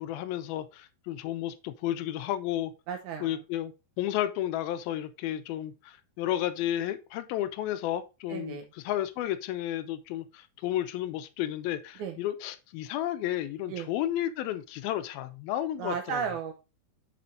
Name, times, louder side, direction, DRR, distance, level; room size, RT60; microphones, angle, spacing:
voice 1, 0.0-2.7 3.2-3.7 4.0-8.6 8.8-16.2, left 12 dB, 85° left, 2.5 m, -32 dB
voice 2, 2.9-3.4 8.3-8.7 12.0-12.2 13.7-13.9 15.8-16.5, right 7 dB, 75° right, 1.9 m, -34 dB
8.6 x 6.8 x 2.6 m
omnidirectional pair, 4.3 m